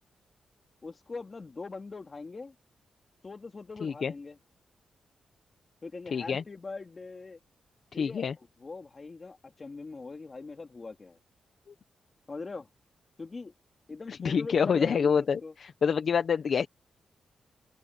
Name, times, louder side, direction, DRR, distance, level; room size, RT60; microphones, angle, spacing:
voice 1, 0.8-2.5 3.2-4.4 5.8-7.4 7.9-11.2 12.3-12.7 13.2-13.5 13.9-15.5, left 3 dB, 30° left, 3.3 m, -41 dB
voice 2, 3.8-4.1 6.1-6.4 8.0-8.3 14.1-16.7, left 6 dB, 55° left, 0.9 m, -27 dB
wide cardioid pair, 135°, 0 cm